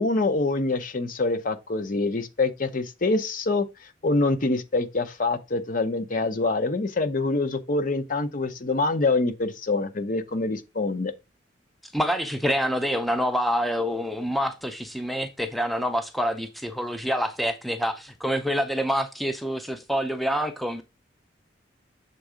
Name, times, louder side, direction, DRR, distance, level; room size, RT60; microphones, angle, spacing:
voice 1, 0.0-3.7 4.0-11.1, left 3 dB, 45° left, 0.7 m, -25 dB
voice 2, 11.9-20.8, equal, ahead, 0.5 m, -27 dB
6.9 x 3.6 x 4.9 m
head